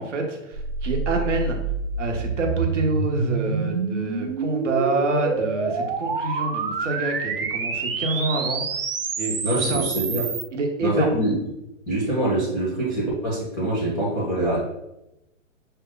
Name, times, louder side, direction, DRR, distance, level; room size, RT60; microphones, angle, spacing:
voice 1, 0.0-1.6 2.0-8.6 9.2-9.9 10.5-11.2, right 3 dB, 65° right, 2 dB, 1.2 m, -27 dB
sound 1, 0.5-10.4, right 4 dB, 45° right, 0.6 m, -27 dB
voice 2, 9.4-10.3 10.8-11.3 11.9-14.6, right 1 dB, ahead, -8 dB, 0.5 m, -24 dB
6.3 x 2.2 x 3.8 m, 0.88 s
hypercardioid pair, 175°, 39 cm